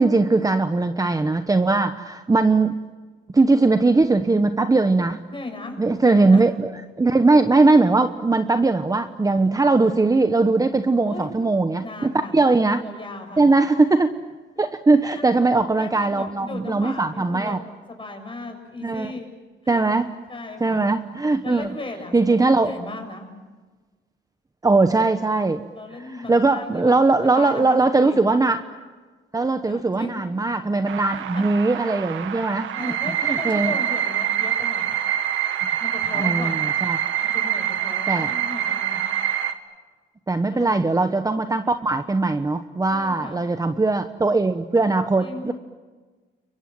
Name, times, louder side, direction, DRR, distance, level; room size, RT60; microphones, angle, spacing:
voice 1, 0.0-2.8 3.3-5.2 5.8-6.7 7.0-12.8 13.4-14.1 14.6-17.6 18.8-19.1 19.7-20.1 20.6-21.7 22.1-22.7 24.6-25.6 26.0-28.6 29.3-32.9 33.3-33.7 36.1-37.0 38.1-38.3 40.3-45.5, right 3 dB, 20° right, 9 dB, 1.1 m, -20 dB
voice 2, 5.3-6.4 11.0-11.4 11.8-12.4 12.8-13.5 15.1-17.6 17.9-19.3 19.6-19.8 20.3-20.8 21.4-23.3 25.7-26.9 27.3-28.2 29.7-30.2 31.1-31.5 32.7-35.0 35.8-36.7 37.2-39.0 40.5-41.0 42.9-43.5 45.2-45.5, left 2 dB, 25° left, 5 dB, 6.9 m, -36 dB
sound 1, 30.9-39.5, right 9 dB, 80° right, 1.8 m, -25 dB
29.5 x 23.0 x 7.8 m, 1.3 s
cardioid pair, 90°, 20 cm